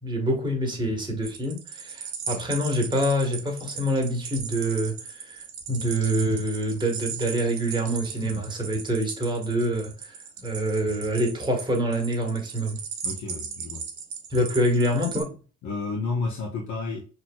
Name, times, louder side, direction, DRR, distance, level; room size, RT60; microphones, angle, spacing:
voice 1, 0.0-12.8 14.3-15.4, right 1 dB, 15° right, 1.4 m, -26 dB
sound 1, 1.2-15.2, right 6 dB, 70° right, 0.9 m, -37 dB
voice 2, 13.0-13.9 15.6-17.0, left 3 dB, 70° left, 1.0 m, -31 dB
4.3 x 2.9 x 2.3 m
cardioid pair, 90°, 30 cm